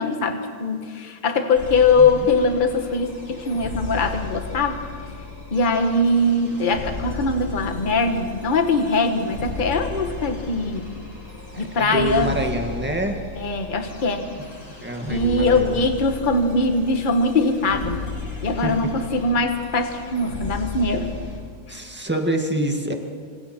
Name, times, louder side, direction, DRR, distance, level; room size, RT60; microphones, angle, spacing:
voice 1, 0.0-4.8 5.5-10.8 11.6-12.3 13.4-14.2 15.1-18.0 18.4-21.1, left 3 dB, 30° left, 5 dB, 1.5 m, -21 dB
sound 1, 1.5-21.4, left 3 dB, 75° left, 8.4 m, -35 dB
voice 2, 2.0-2.3 11.7-13.2 14.8-15.8 18.5-18.9 21.7-22.9, right 1 dB, 5° right, 3 dB, 1.9 m, -26 dB
27.0 x 26.5 x 4.5 m, 2.1 s
omnidirectional pair, 1.7 m